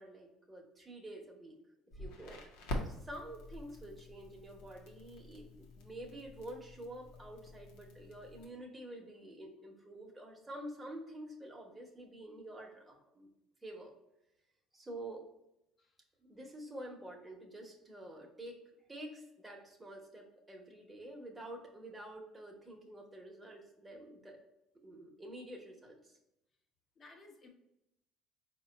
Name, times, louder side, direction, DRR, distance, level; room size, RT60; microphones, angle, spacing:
voice 1, 0.0-1.6 2.0-2.4 2.8-13.3 13.6-13.9 14.7-15.2 16.2-18.6 18.9-24.4 24.8-26.2, right 1 dB, 15° right, 0 dB, 1.0 m, -48 dB
Crackle, 1.9-8.4, left 1 dB, 85° left, 0.7 m, -46 dB
voice 2, 1.9-2.5 15.8-16.0 27.0-27.5, left 2 dB, 35° left, 2 dB, 0.8 m, -58 dB
4.2 x 2.2 x 3.9 m, 0.88 s
supercardioid pair, 100°, 0 cm